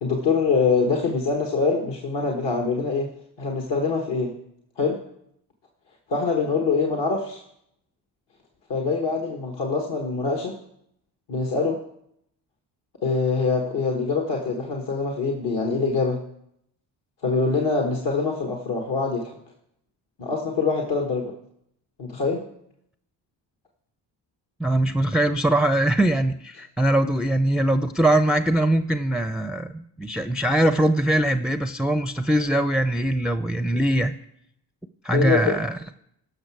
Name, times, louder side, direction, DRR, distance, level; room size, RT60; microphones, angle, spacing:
voice 1, 0.0-3.1 3.4-4.3 4.8-5.0 6.1-7.4 8.7-10.6 11.3-11.8 13.0-16.2 17.2-19.4 20.2-21.3 22.0-22.5 35.1-35.6, left 4 dB, 65° left, 1 dB, 1.5 m, -24 dB
voice 2, 24.6-34.2 35.0-35.8, right 1 dB, ahead, 11 dB, 0.4 m, -22 dB
16.0 x 6.1 x 4.7 m, 0.75 s
supercardioid pair, 55°, 45 cm